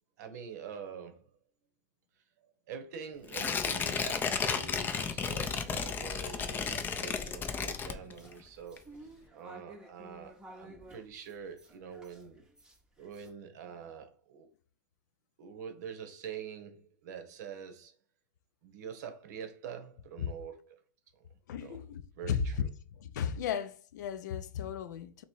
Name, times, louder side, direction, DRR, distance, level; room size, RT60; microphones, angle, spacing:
voice 1, 0.2-1.3 2.7-8.8 9.3-12.4 13.0-14.5 15.4-18.0 18.6-20.8 21.1-21.8 22.1-22.7, right 7 dB, 65° right, 0.9 m, -45 dB
Tearing, 3.3-8.4 8.8-8.9, left 6 dB, 20° left, 0.4 m, -33 dB
sound 1, 5.9-13.3, right 1 dB, 10° right, 0.7 m, -54 dB
voice 2, 21.5-22.5 23.0-25.2, left 8 dB, 75° left, 0.5 m, -35 dB
2.9 x 2.9 x 4.5 m
hypercardioid pair, 120°, 10 cm